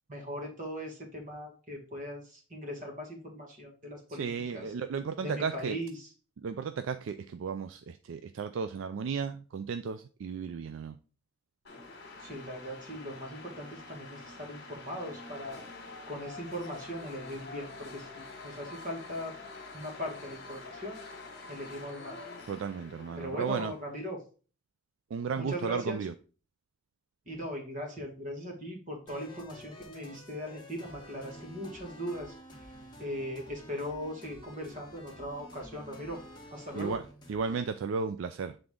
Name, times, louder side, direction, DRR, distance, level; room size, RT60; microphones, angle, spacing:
voice 1, 0.1-4.6 5.2-5.9 12.2-15.6 16.1-19.3 19.7-21.0 21.5-22.2 23.2-24.2 25.4-26.0 27.3-32.3 33.0-36.2 36.5-37.0, equal, 40° right, 1.6 m, -39 dB
voice 2, 4.1-5.8 6.4-11.0 22.5-23.7 25.1-26.1 36.7-37.0 37.3-38.6, right 5 dB, 65° right, 0.3 m, -34 dB
sound 1, 11.6-23.9, left 3 dB, 50° left, 1.6 m, -47 dB
sound 2, 29.1-37.6, equal, 20° left, 1.2 m, -50 dB
7.8 x 3.7 x 3.6 m
head